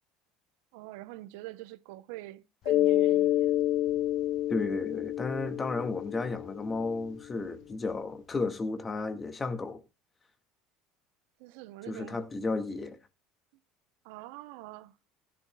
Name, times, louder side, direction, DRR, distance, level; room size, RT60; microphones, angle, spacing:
voice 1, 0.7-3.5 11.4-12.2 14.0-14.9, right 17 dB, 80° right, 0.7 m, -45 dB
Mallet percussion, 2.7-7.1, left 14 dB, 55° left, 0.5 m, -28 dB
voice 2, 4.5-9.8 11.9-13.0, left 3 dB, 25° left, 1.9 m, -33 dB
16.5 x 11.5 x 2.3 m
supercardioid pair, 100°, 0 cm